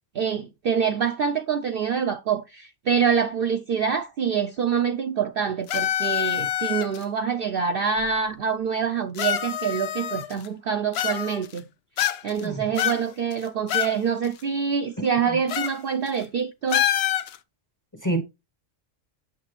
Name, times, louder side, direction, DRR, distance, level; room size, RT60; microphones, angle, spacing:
voice 1, 0.1-11.6 12.2-16.8, right 6 dB, 60° right, 0.6 m, -26 dB
sound 1, 5.7-7.0 8.0-8.1 9.2-10.5 10.9-11.6 12.0-12.4 12.8-14.0 14.2-14.3 15.5-15.8 16.1-16.2 16.7-17.4, left 11 dB, 65° left, 0.7 m, -26 dB
voice 2, 12.4-12.6 15.0-15.2 18.0-18.2, right 2 dB, 20° left, 0.7 m, -27 dB
8.3 x 6.6 x 3.1 m
omnidirectional pair, 1.3 m